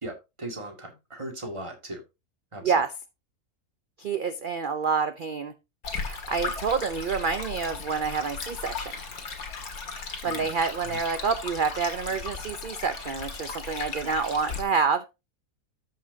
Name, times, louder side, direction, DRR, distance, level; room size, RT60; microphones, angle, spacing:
voice 1, 0.0-2.0 2.5-2.8 10.2-10.5 10.9-11.0, right 1 dB, 20° right, 3 dB, 2.1 m, -38 dB
voice 2, 4.0-5.5 5.9-8.9 10.2-15.0, right 5 dB, 50° right, 10 dB, 0.6 m, -28 dB
Stream, 5.8-14.6, left 4 dB, 65° left, 2.2 m, -36 dB
14.0 x 5.7 x 2.7 m, 0.24 s
omnidirectional pair, 1.6 m